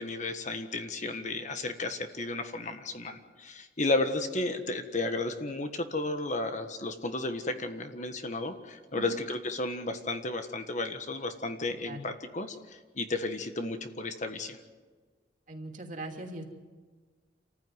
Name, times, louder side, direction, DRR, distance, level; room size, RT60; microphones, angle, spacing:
voice 1, 0.0-14.6, left 2 dB, 40° left, 7 dB, 1.5 m, -33 dB
voice 2, 15.5-16.4, right 2 dB, 45° right, 2 dB, 2.9 m, -40 dB
28.0 x 15.0 x 9.5 m, 1.4 s
head